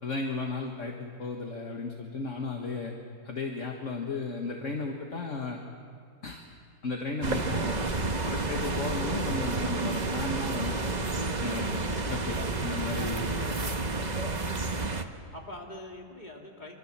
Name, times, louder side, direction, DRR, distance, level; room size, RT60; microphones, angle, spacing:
voice 1, 0.0-2.9 3.2-5.6 6.2-6.4 6.8-8.0 8.3-10.9 11.4-13.8, left 3 dB, 50° left, 1 dB, 1.9 m, -35 dB
sound 1, 7.2-15.0, right 3 dB, 30° right, 1.2 m, -30 dB
voice 2, 13.1-14.9 15.3-16.8, left 1 dB, 25° left, 0 dB, 3.3 m, -46 dB
25.0 x 25.0 x 7.5 m, 2.3 s
omnidirectional pair, 1.7 m